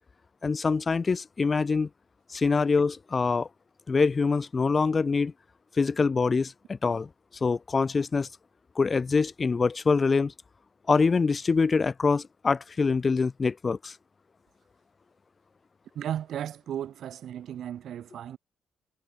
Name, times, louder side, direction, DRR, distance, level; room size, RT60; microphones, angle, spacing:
voice 1, 0.4-1.9 2.3-3.5 3.9-5.3 5.8-7.1 7.4-8.3 8.8-10.3 10.9-13.9, left 4 dB, 35° left, 0.3 m, -24 dB
voice 2, 15.9-18.4, right 10 dB, 70° right, 0.7 m, -35 dB
cardioid pair, 90°, 0 cm